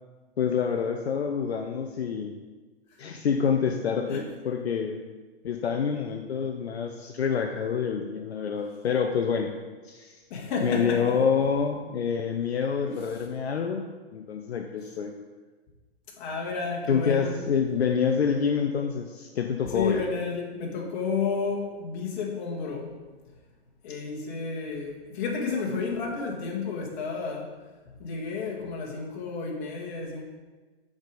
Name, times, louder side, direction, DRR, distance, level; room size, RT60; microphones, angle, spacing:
voice 1, 0.4-2.4 3.0-5.0 5.4-9.5 9.8-10.2 10.6-13.8 14.1-15.1 16.9-20.0, left 6 dB, 80° left, 4 dB, 0.7 m, -27 dB
voice 2, 10.3-11.2 12.9-13.0 16.2-17.4 19.6-22.9 23.8-27.5 28.0-30.2, left 4 dB, 45° left, -1 dB, 1.9 m, -31 dB
6.5 x 4.8 x 5.1 m, 1.3 s
hypercardioid pair, 120°, 31 cm